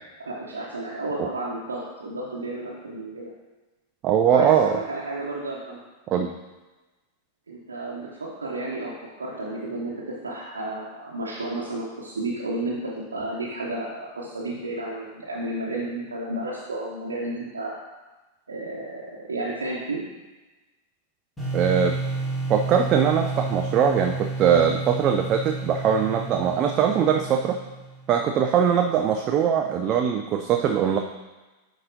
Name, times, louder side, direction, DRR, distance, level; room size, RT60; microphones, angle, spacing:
voice 1, 0.3-3.3 4.2-5.8 7.5-17.8 18.5-20.0, right 2 dB, 75° right, -6 dB, 0.9 m, -32 dB
voice 2, 4.0-4.8 6.1-6.3 21.5-22.0 22.5-27.6 28.1-31.0, right 8 dB, 35° right, 4 dB, 0.4 m, -21 dB
sound 1, 21.4-28.2, right 3 dB, 10° left, 1.8 m, -31 dB
9.5 x 3.9 x 2.7 m, 1.2 s
figure-of-eight pair, 90°, 0 cm